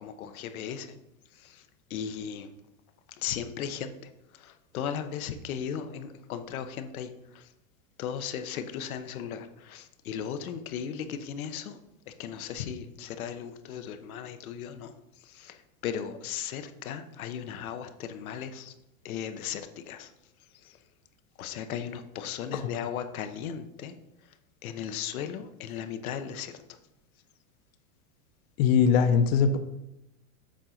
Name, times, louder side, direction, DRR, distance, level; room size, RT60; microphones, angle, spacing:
voice 1, 0.0-0.9 1.9-2.5 3.2-3.9 4.7-7.1 8.0-9.5 9.7-11.7 12.2-14.9 15.8-18.7 19.0-19.6 19.9-20.1 21.4-23.9 24.6-26.5, left 8 dB, 90° left, 8 dB, 0.9 m, -36 dB
voice 2, 28.6-29.6, left 6 dB, 45° left, 9 dB, 0.7 m, -21 dB
7.4 x 3.9 x 5.7 m, 0.89 s
supercardioid pair, 150°, 41 cm